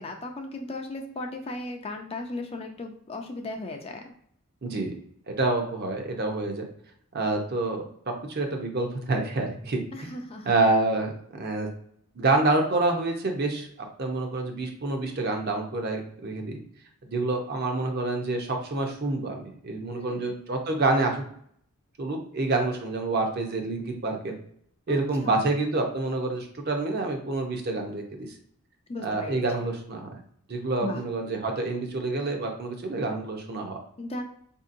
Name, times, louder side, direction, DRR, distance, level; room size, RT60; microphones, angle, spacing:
voice 1, 0.0-4.1 9.9-10.5 19.9-20.4 24.9-25.4 28.9-29.4 30.8-31.0 34.0-34.2, left 2 dB, 25° left, 3 dB, 0.4 m, -36 dB
voice 2, 4.6-4.9 5.3-6.6 7.1-7.8 8.3-10.1 10.5-11.7 12.2-16.6 17.0-21.2 22.0-24.3 24.9-28.3 29.0-30.1 30.5-33.8, right 2 dB, 45° right, 3 dB, 0.6 m, -27 dB
4.3 x 2.7 x 2.5 m, 0.65 s
head